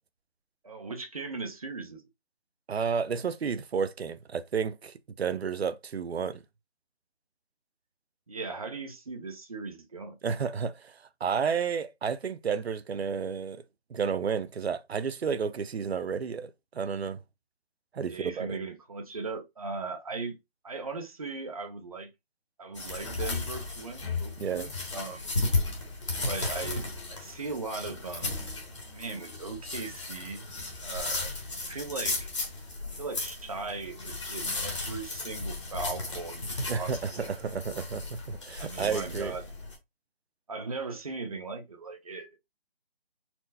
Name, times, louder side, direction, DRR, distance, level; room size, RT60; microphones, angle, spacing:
voice 1, 0.6-2.0 8.3-10.2 18.1-20.4 20.6-22.1 22.6-25.3 26.2-28.4 28.9-30.5 30.8-31.3 31.6-32.3 32.9-36.4 36.7-37.3 37.7-37.8 38.6-39.5 40.5-42.3, right 4 dB, 35° right, 0.7 m, -38 dB
voice 2, 2.7-6.4 10.2-13.6 13.9-17.2 17.9-18.6 24.4-24.7 36.7-39.3, right 6 dB, 85° right, 0.6 m, -31 dB
sound 1, 22.8-39.8, left 3 dB, 30° left, 1.0 m, -35 dB
4.4 x 2.1 x 3.9 m
figure-of-eight pair, 170°, 31 cm